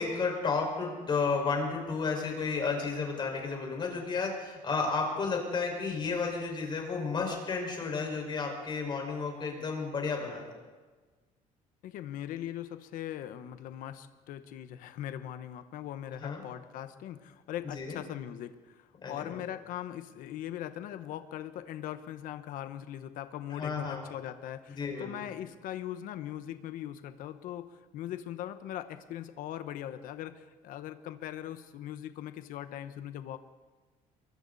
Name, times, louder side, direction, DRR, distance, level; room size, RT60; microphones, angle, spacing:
voice 1, 0.0-10.4 16.2-16.4 17.7-18.0 19.0-19.4 23.5-24.0 24.7-25.1, left 4 dB, 35° left, 1 dB, 5.3 m, -32 dB
voice 2, 11.8-33.4, left 11 dB, 75° left, 10 dB, 1.1 m, -40 dB
28.5 x 23.0 x 4.2 m, 1.4 s
cardioid pair, 150°, 14 cm